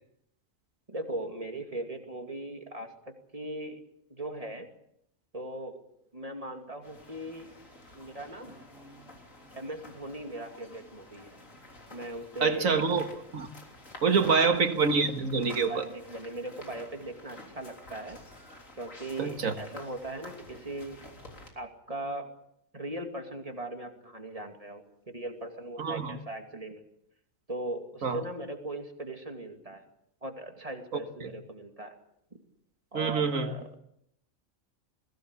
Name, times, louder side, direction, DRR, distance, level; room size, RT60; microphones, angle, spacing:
voice 1, 0.9-3.8 4.1-4.7 5.3-5.8 6.1-7.5 7.9-8.6 9.5-11.4 11.9-12.8 14.2-14.5 15.5-18.2 18.7-21.1 21.6-22.3 22.7-26.8 27.5-29.8 30.2-31.9 32.3-32.4 32.9-33.6, right 1 dB, 25° right, 4 dB, 2.6 m, -39 dB
sound 1, 6.8-21.5, left 2 dB, 75° left, 4.0 m, -50 dB
voice 2, 12.4-13.5 14.0-15.9 19.2-19.5 25.8-26.2 28.0-28.2 31.2-31.3 32.9-33.5, right 5 dB, 85° right, 8 dB, 2.0 m, -26 dB
21.5 x 17.0 x 8.3 m, 0.77 s
omnidirectional pair, 1.4 m